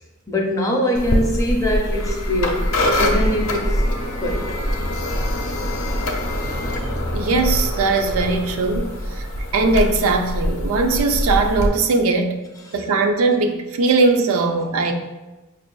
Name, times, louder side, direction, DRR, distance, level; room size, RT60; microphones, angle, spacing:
voice 1, 0.3-2.6 3.0-3.8 4.2-4.8 6.3-6.7 12.7-12.8, left 1 dB, 15° left, -1 dB, 0.4 m, -23 dB
sound 1, 0.9-11.7, equal, 75° left, 0.6 m, -23 dB
voice 2, 7.1-9.3 9.5-12.5 12.7-14.9, right 3 dB, 75° right, 5 dB, 0.4 m, -20 dB
5.7 x 2.4 x 2.2 m, 1.1 s
head